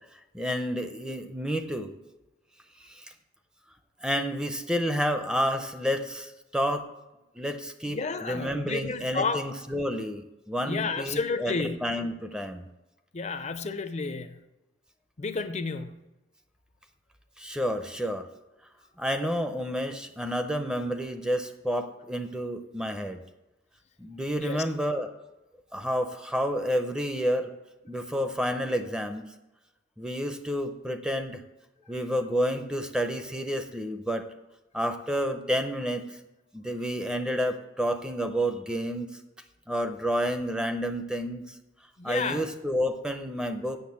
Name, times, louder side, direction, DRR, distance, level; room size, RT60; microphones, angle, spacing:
voice 1, 0.3-1.9 2.8-3.1 4.0-6.9 7.4-12.6 17.4-18.3 19.0-23.2 24.0-25.1 25.7-27.5 27.9-29.3 30.0-31.4 31.9-34.3 34.7-36.0 36.5-39.2 39.7-41.5 42.0-43.8, equal, 5° right, 7 dB, 0.6 m, -30 dB
voice 2, 7.9-9.4 10.6-11.8 13.1-14.4 15.2-16.0 24.4-24.6 42.0-42.4, left 4 dB, 35° left, 10 dB, 0.5 m, -31 dB
8.0 x 6.8 x 7.0 m, 1.0 s
head